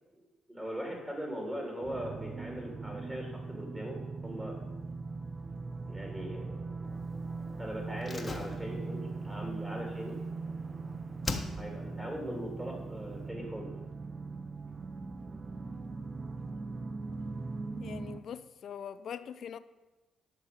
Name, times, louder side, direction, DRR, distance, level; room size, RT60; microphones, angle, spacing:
voice 1, 0.5-4.6 5.9-6.8 7.6-10.2 11.6-13.7, equal, 20° right, 0 dB, 3.3 m, -40 dB
sound 1, 1.8-18.2, right 3 dB, 40° right, 0.6 m, -40 dB
Slam, 8.0-10.8 11.2-12.0 12.2-12.3, left 3 dB, 30° left, 1.2 m, -40 dB
voice 2, 17.8-19.6, left 8 dB, 65° left, 14 dB, 0.5 m, -42 dB
10.5 x 6.5 x 5.5 m, 1.1 s
supercardioid pair, 65°, 0 cm